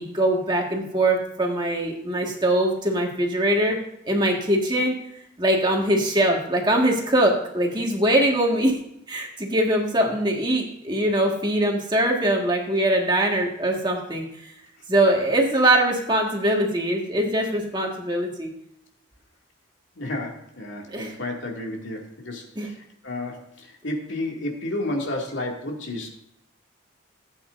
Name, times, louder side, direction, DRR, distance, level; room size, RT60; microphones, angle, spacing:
voice 1, 0.0-3.8 4.1-5.0 5.4-8.8 9.1-14.5 14.9-18.5 20.9-21.1 22.6-22.7, right 1 dB, 20° right, 0 dB, 1.7 m, -22 dB
voice 2, 20.0-22.4 23.0-26.1, left 1 dB, 70° left, 0 dB, 2.3 m, -31 dB
16.0 x 8.7 x 2.6 m, 0.76 s
head